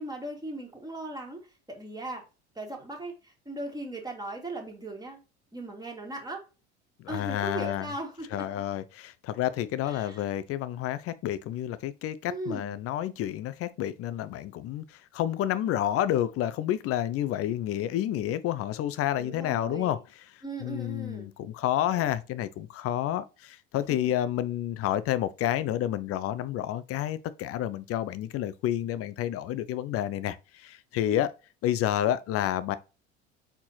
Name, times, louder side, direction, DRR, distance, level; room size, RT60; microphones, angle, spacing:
voice 1, 0.0-1.4 1.7-2.2 2.6-5.2 5.5-6.4 7.1-8.5 9.8-10.3 12.3-12.8 19.1-20.0 20.4-21.3 21.8-22.1 23.9-24.1 31.0-31.2, right 1 dB, 10° right, 1.9 m, -38 dB
voice 2, 7.0-7.9 8.3-20.0 20.6-31.3 31.6-32.8, left 12 dB, 45° left, 0.6 m, -29 dB
4.4 x 4.2 x 2.8 m
hypercardioid pair, 75°, 33 cm